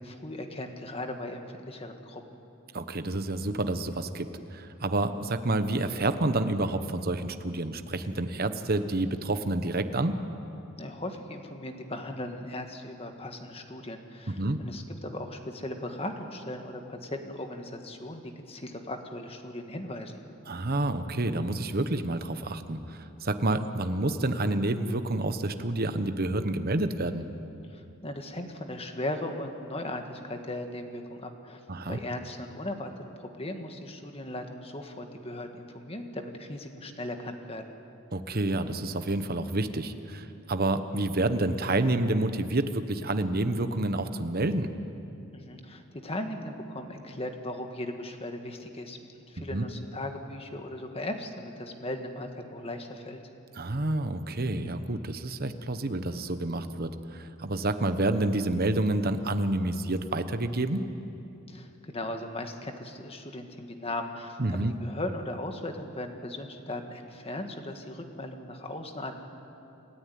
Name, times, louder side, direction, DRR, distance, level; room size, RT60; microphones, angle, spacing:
voice 1, 0.0-2.4 10.8-20.2 27.7-31.6 31.9-37.6 45.3-49.0 49.3-53.2 61.5-69.1, left 1 dB, 30° left, 5 dB, 1.7 m, -38 dB
voice 2, 2.7-10.2 14.3-14.6 20.5-27.3 31.7-32.0 38.1-44.7 49.4-49.7 53.5-60.9 64.4-64.7, right 2 dB, 45° right, 10 dB, 1.1 m, -29 dB
29.0 x 13.5 x 9.4 m, 2.8 s
head